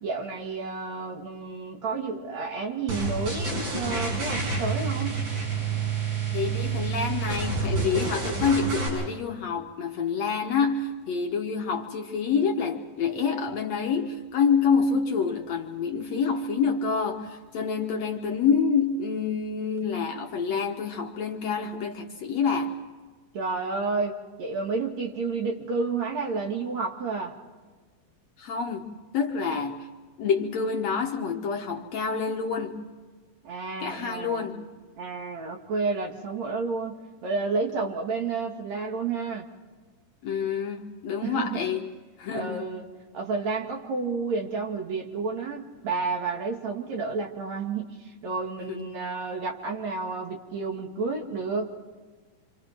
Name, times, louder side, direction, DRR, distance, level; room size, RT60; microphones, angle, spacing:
voice 1, 0.0-5.3 23.3-27.3 33.4-34.6 35.0-39.5 41.2-41.6 42.3-42.9 43.1-51.7, right 4 dB, 55° right, 3.1 m, -31 dB
sound 1, 2.9-8.9, right 4 dB, 80° right, 9.3 m, -28 dB
voice 2, 6.3-22.8 28.4-29.9 30.2-32.9 33.8-34.7 40.2-41.9 42.2-42.7 48.7-48.8, left 5 dB, 60° left, 2.1 m, -27 dB
27.5 x 27.0 x 4.5 m
omnidirectional pair, 3.9 m